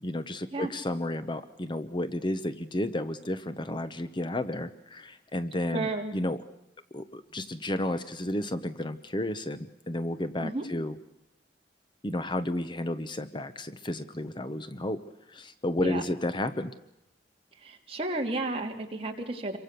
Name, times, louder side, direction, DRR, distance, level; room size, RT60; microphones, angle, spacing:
voice 1, 0.0-6.4 6.9-11.0 12.0-15.0 15.3-16.7, left 1 dB, 25° left, 11 dB, 0.9 m, -32 dB
voice 2, 5.7-6.1 10.4-10.7 15.8-16.0 17.6-19.6, right 2 dB, 30° right, 1 dB, 3.1 m, -32 dB
27.5 x 24.0 x 6.8 m, 0.87 s
head